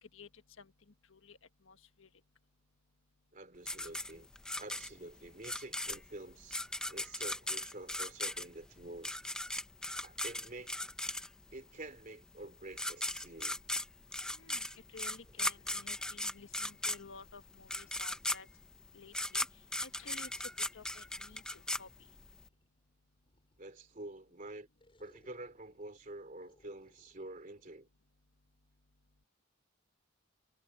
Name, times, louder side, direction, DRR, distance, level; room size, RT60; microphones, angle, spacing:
voice 1, 1.1-2.1 14.3-18.5 18.9-19.5 19.8-20.3 20.7-21.9, left 4 dB, 75° left, 1.5 m, -54 dB
voice 2, 3.3-4.3 4.6-6.6 6.9-9.1 10.0-10.8 11.5-13.6 23.6-24.7 25.0-27.9, right 2 dB, 40° right, 3.0 m, -48 dB
sound 1, 3.7-11.6 12.4-12.5 12.7-22.4, left 1 dB, 5° left, 0.7 m, -38 dB
sound 2, 15.2-18.6 20.0-23.8 24.8-27.7, left 1 dB, 25° left, 6.9 m, -71 dB
head